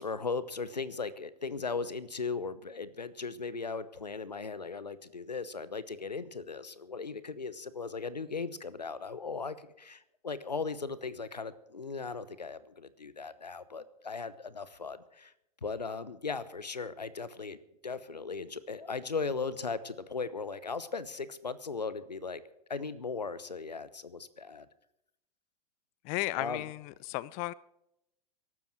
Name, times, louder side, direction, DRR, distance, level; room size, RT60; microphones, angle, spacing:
voice 1, 0.0-15.3 15.6-17.6 17.8-22.4 22.7-24.7 26.4-26.7, left 4 dB, 85° left, 1.0 m, -37 dB
voice 2, 26.0-27.5, left 19 dB, 35° left, 0.5 m, -34 dB
22.5 x 12.5 x 4.6 m
figure-of-eight pair, 90°, 21 cm